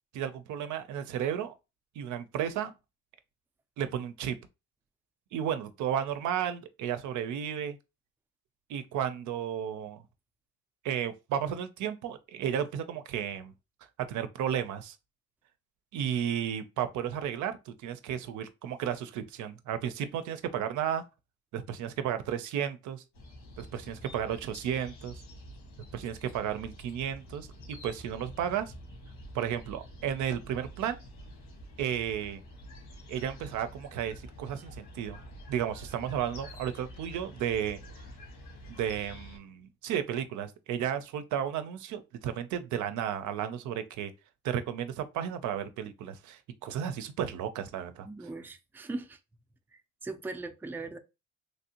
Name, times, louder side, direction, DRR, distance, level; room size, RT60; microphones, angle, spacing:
voice 1, 0.1-1.5 2.0-2.7 3.8-4.4 5.3-7.8 8.7-10.0 10.8-13.5 14.1-15.0 15.9-21.0 21.5-23.0 23.6-25.2 25.9-27.5 27.8-28.7 29.3-31.0 31.8-32.4 33.1-35.2 35.5-37.8 38.7-44.1 44.4-48.1, right 9 dB, 75° right, 0.5 m, -33 dB
sound 1, 23.1-39.4, equal, 90° left, 1.5 m, -48 dB
voice 2, 48.0-49.2 49.7-51.0, right 2 dB, 5° right, 0.3 m, -39 dB
3.2 x 2.6 x 2.8 m
cardioid pair, 90°, 30 cm